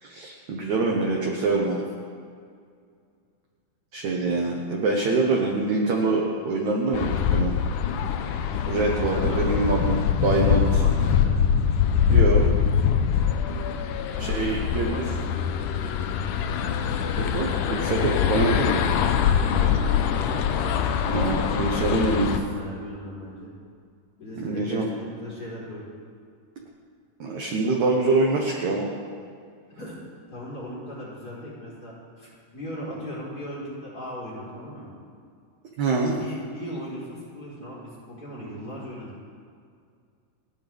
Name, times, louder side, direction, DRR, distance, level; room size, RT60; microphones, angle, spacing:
voice 1, 0.0-1.8 3.9-7.5 8.7-10.8 12.1-12.6 14.2-15.0 17.2-18.8 21.1-22.3 24.4-24.9 27.2-28.9 35.8-36.2, right 3 dB, 60° right, -1 dB, 2.2 m, -25 dB
sound 1, 6.9-22.4, left 8 dB, 85° left, 1.8 m, -23 dB
voice 2, 8.9-9.5 10.2-11.3 14.1-15.2 19.5-20.5 20.9-23.5 24.2-25.8 29.8-29.9 30.3-34.9 36.1-39.2, equal, 25° left, -7 dB, 4.6 m, -38 dB
30.0 x 10.0 x 3.6 m, 2.2 s
omnidirectional pair, 4.7 m